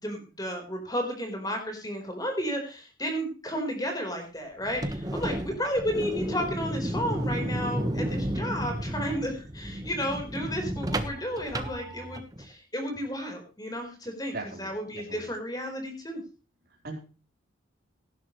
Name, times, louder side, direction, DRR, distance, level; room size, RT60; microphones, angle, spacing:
voice 1, 0.0-16.2, equal, 20° left, 3 dB, 4.3 m, -33 dB
sound 1, 4.6-12.5, right 1 dB, 20° right, 1.3 m, -32 dB
voice 2, 14.3-15.3 16.8-17.0, right 2 dB, 50° right, 0 dB, 4.2 m, -39 dB
18.0 x 11.5 x 3.2 m, 0.34 s
head